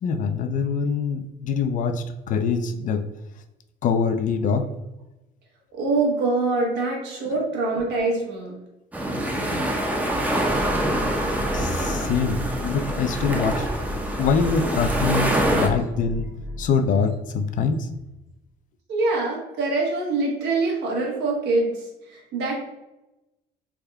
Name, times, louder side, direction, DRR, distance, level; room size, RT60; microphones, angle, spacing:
voice 1, 0.0-3.1 3.8-4.7 7.3-7.4 11.5-13.7 14.2-16.3 16.6-17.9, left 5 dB, 50° left, 8 dB, 0.4 m, -24 dB
voice 2, 5.7-8.6 18.9-22.5, right 3 dB, 80° right, -2 dB, 1.1 m, -24 dB
sound 1, 8.9-15.7, right 1 dB, 10° right, 0.5 m, -25 dB
sound 2, 10.4-16.7, equal, 55° right, 0.8 m, -34 dB
3.5 x 2.2 x 3.4 m, 0.97 s
cardioid pair, 110°, 17 cm